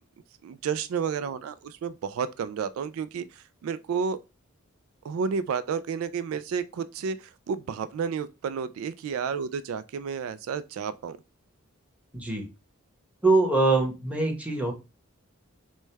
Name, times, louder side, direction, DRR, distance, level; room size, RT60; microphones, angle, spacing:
voice 1, 0.4-4.2 5.0-11.2, right 6 dB, 80° right, 0.3 m, -31 dB
voice 2, 12.1-12.4 13.2-14.7, right 3 dB, 5° right, 1.0 m, -23 dB
6.1 x 2.2 x 3.3 m
head